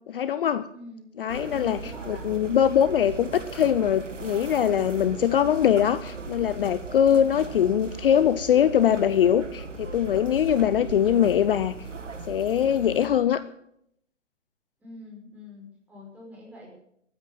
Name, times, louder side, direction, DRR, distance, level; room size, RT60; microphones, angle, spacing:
voice 1, 0.1-0.7 1.2-1.8 2.1-11.7 12.3-13.4, left 9 dB, 50° left, 14 dB, 0.6 m, -22 dB
voice 2, 0.7-1.1 1.5-2.3 14.8-16.7, left 1 dB, 5° right, -3 dB, 5.2 m, -44 dB
sound 1, 1.3-13.1, right 4 dB, 90° right, 1.8 m, -38 dB
13.5 x 9.5 x 7.9 m, 0.72 s
figure-of-eight pair, 135°, 36 cm